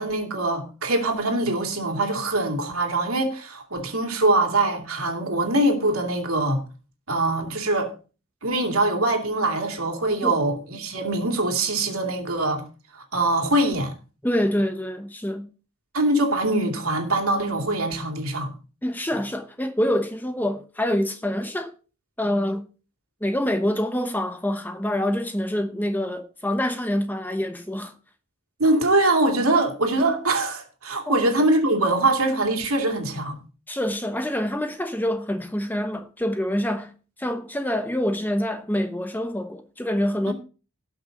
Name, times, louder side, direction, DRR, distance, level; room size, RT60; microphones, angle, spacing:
voice 1, 0.0-6.6 7.1-7.9 8.4-12.6 12.9-13.9 15.9-18.5 28.6-33.4 40.3-40.4, right 2 dB, 85° right, 2.6 m, -23 dB
voice 2, 14.2-15.4 18.8-21.7 22.2-22.6 23.2-27.9 31.1-31.2 33.7-36.9 37.2-40.3, left 1 dB, 10° left, 0.9 m, -26 dB
18.0 x 6.0 x 3.8 m
head